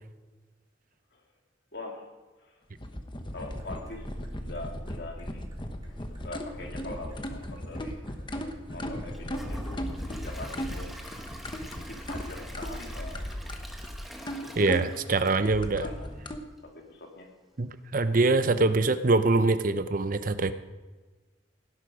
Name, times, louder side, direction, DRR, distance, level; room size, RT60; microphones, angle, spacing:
voice 1, 1.7-2.0 2.4-2.5 3.3-4.1 4.4-5.4 6.2-8.0 8.7-9.8 10.2-10.9 11.9-13.2 14.3-16.1 16.6-17.3, left 2 dB, 60° left, 2 dB, 2.7 m, -43 dB
sound 1, 2.8-16.4, equal, 25° left, 1.1 m, -37 dB
sound 2, 3.3-13.9, equal, 20° right, 2.6 m, -45 dB
Gurgling / Toilet flush / Trickle dribble, 9.1-16.2 16.6-16.7 17.2-17.3, equal, ahead, 1.2 m, -46 dB
voice 2, 14.6-15.9 17.6-20.5, right 3 dB, 45° right, 12 dB, 0.7 m, -24 dB
17.0 x 10.5 x 5.0 m, 1.3 s
head